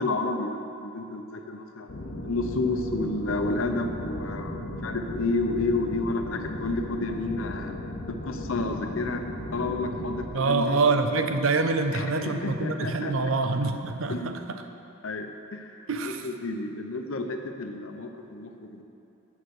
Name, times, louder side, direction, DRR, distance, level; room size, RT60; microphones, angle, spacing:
voice 1, 0.0-1.9 2.2-7.7 8.2-9.2 9.5-10.8 11.9-13.3 14.1-14.4 15.0-18.8, left 2 dB, 85° left, 5 dB, 0.7 m, -31 dB
sound 1, 1.9-10.3, left 1 dB, 50° left, 0.9 m, -36 dB
voice 2, 10.3-14.4 15.9-16.3, right 3 dB, 80° right, 7 dB, 0.6 m, -25 dB
9.2 x 5.7 x 6.5 m, 2.7 s
head